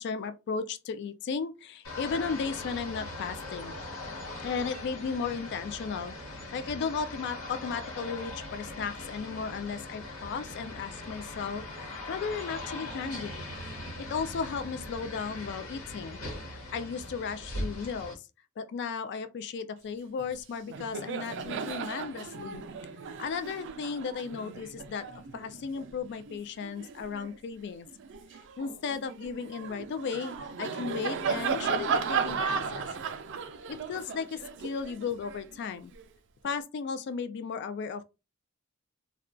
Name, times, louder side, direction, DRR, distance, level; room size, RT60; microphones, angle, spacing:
voice 1, 0.0-3.8 4.4-13.4 14.1-16.2 16.4-18.3 18.6-22.6 23.2-25.1 25.3-27.9 28.6-32.9 33.7-35.9 36.4-38.0, left 5 dB, 55° left, 0.3 m, -35 dB
sound 1, 1.8-18.1, left 2 dB, 85° left, 1.2 m, -40 dB
Laughter, 20.2-20.4 20.6-27.4 27.9-36.0, right 5 dB, 60° right, 0.4 m, -35 dB
2.3 x 2.2 x 3.6 m
head